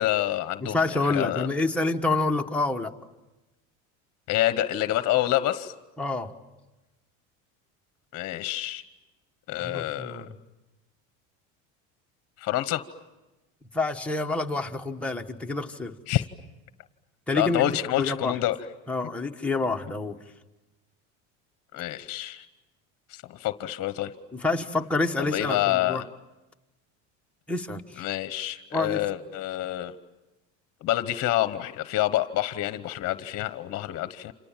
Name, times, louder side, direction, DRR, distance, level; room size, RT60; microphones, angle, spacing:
voice 1, 0.0-1.5 4.3-5.7 8.1-8.8 9.5-10.3 12.4-12.8 16.1-16.2 17.3-18.6 21.7-22.4 23.1-24.1 25.2-26.0 28.0-29.9 30.8-34.3, left 14 dB, 45° left, 11 dB, 1.1 m, -27 dB
voice 2, 0.6-2.9 6.0-6.3 9.6-10.3 13.7-15.9 17.3-17.6 17.9-18.3 18.9-20.2 24.3-26.0 27.5-28.1 28.7-29.0, left 3 dB, 5° left, 1 dB, 1.3 m, -28 dB
29.0 x 27.5 x 7.4 m, 1.1 s
cardioid pair, 140°, 35 cm